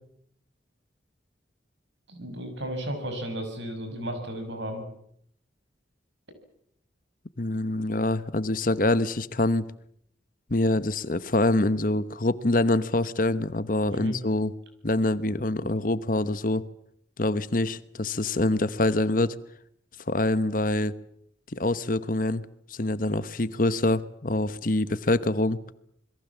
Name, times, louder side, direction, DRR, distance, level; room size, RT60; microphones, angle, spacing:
voice 1, 2.1-4.8 13.9-14.1, right 1 dB, 70° right, 7 dB, 6.9 m, -34 dB
voice 2, 7.4-9.7 10.5-14.5 14.8-16.6 17.2-19.3 20.1-20.9 21.5-22.4 22.7-25.6, left 2 dB, 45° left, 15 dB, 1.0 m, -25 dB
27.5 x 22.0 x 7.3 m, 0.70 s
head